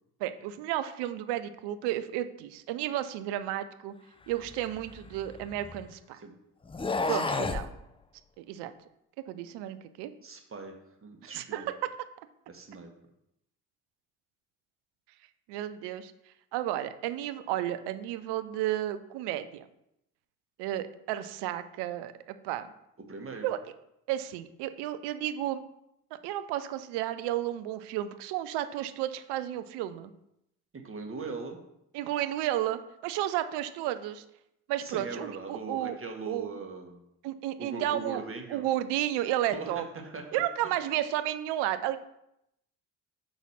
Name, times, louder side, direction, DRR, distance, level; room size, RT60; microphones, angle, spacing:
voice 1, 0.2-3.9 4.3-6.2 7.1-7.7 8.4-8.7 9.3-10.1 11.2-11.6 15.5-16.1 16.5-19.7 20.6-22.7 23.4-23.6 24.1-25.6 26.2-30.1 31.9-34.2 34.7-36.0 36.2-36.5 37.2-38.2 38.5-39.8 40.3-42.0, right 13 dB, 70° right, 12 dB, 0.7 m, -32 dB
sound 1, 4.4-5.9 6.7-7.7, left 3 dB, 15° left, 0.6 m, -32 dB
voice 2, 7.1-7.4 10.2-10.7 11.0-11.7 12.5-12.9 23.1-23.5 30.7-31.6 34.8-37.0 37.6-38.7 39.5-40.2, right 3 dB, 30° right, 3 dB, 1.5 m, -40 dB
6.2 x 4.0 x 5.8 m, 0.81 s
hypercardioid pair, 50°, 43 cm